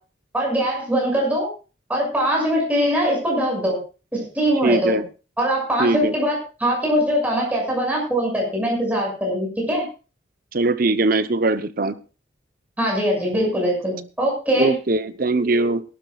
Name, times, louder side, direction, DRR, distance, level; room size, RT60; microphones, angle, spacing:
voice 1, 0.3-1.5 1.9-3.8 4.1-5.0 5.4-9.8 12.8-14.7, equal, 10° right, -2 dB, 6.6 m, -22 dB
voice 2, 4.6-5.0 5.8-6.1 10.5-12.0 14.6-15.8, right 2 dB, 45° right, 13 dB, 0.8 m, -21 dB
21.5 x 12.0 x 2.4 m, 0.34 s
head